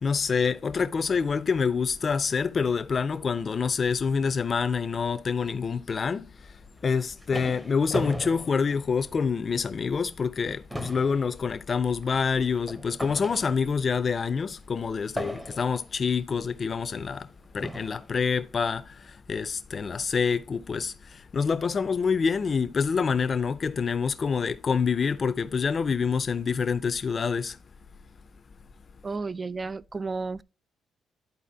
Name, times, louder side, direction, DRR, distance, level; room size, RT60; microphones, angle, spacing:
voice 1, 0.0-6.5 6.8-27.6, left 5 dB, 40° left, 0.5 m, -27 dB
sound 1, 6.8-9.5 9.9-10.1 10.4-13.9 15.2-15.9 16.8-16.9 17.6-18.1, right 1 dB, 10° right, 0.8 m, -37 dB
voice 2, 29.0-30.4, right 4 dB, 30° right, 0.3 m, -32 dB
11.5 x 4.1 x 2.8 m
cardioid pair, 90°, 0 cm